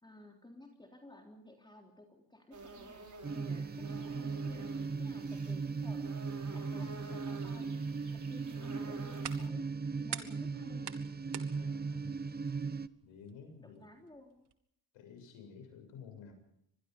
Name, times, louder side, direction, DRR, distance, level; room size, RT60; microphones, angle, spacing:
voice 1, 0.0-3.0 3.3-6.1 6.5-7.8 8.1-9.7 10.0-10.9 11.6-11.7 13.6-14.5, left 1 dB, 10° left, 1 dB, 3.6 m, -54 dB
sound 1, 2.5-9.5, right 3 dB, 35° right, 5.4 m, -50 dB
sound 2, 3.2-12.9, right 4 dB, 20° right, 0.8 m, -38 dB
sound 3, 8.7-14.5, right 9 dB, 55° right, 2.1 m, -49 dB
voice 2, 11.5-12.2 13.0-13.8 14.9-16.3, left 6 dB, 90° left, 5 dB, 7.5 m, -52 dB
25.5 x 21.0 x 5.4 m, 0.76 s
cardioid pair, 100°, 47 cm